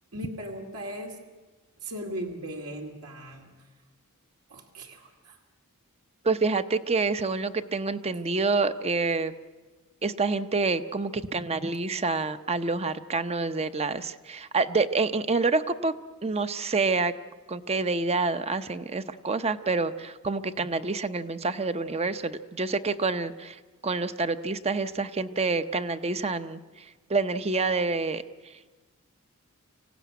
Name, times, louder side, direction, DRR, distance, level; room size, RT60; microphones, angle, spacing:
voice 1, 0.1-1.2 1.8-3.5 4.5-5.4, right 1 dB, 80° right, 1 dB, 2.4 m, -38 dB
voice 2, 6.2-9.3 10.0-15.9 16.2-17.1 17.5-26.6 27.1-28.2, right 3 dB, 30° right, 11 dB, 0.7 m, -27 dB
25.5 x 16.5 x 9.3 m, 1.3 s
head